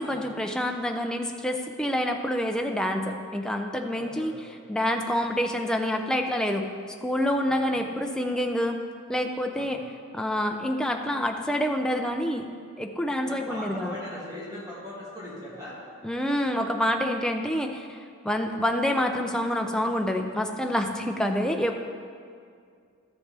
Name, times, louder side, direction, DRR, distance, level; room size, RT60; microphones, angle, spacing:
voice 1, 0.0-4.3 4.7-6.7 7.0-8.8 9.1-9.8 10.1-12.5 12.8-14.0 16.0-21.9, equal, 5° left, 3 dB, 0.4 m, -27 dB
voice 2, 3.9-4.5 7.4-7.7 9.5-9.9 13.3-15.8, left 1 dB, 20° right, -7 dB, 1.8 m, -40 dB
12.5 x 7.1 x 3.3 m, 2.3 s
head